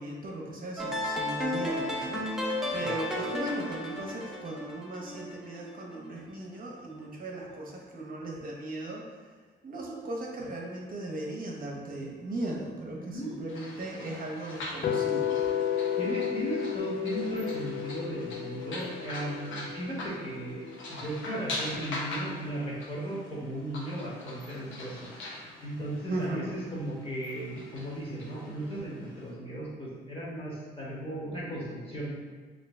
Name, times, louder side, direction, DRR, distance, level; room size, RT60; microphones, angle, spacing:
voice 1, 0.0-9.1 9.6-15.3 26.1-26.5, right 2 dB, 45° right, -2 dB, 0.7 m, -37 dB
sound 1, 0.8-5.9, left 1 dB, ahead, 0.7 m, -33 dB
voice 2, 13.0-13.4 16.0-25.1 25.6-32.1, right 1 dB, 30° left, -5 dB, 1.1 m, -36 dB
sound 2, 13.5-29.3, left 2 dB, 80° left, 0.8 m, -43 dB
sound 3, 14.8-20.9, left 9 dB, 50° left, 0.5 m, -32 dB
3.3 x 2.6 x 3.3 m, 1.4 s
cardioid pair, 90°, 20 cm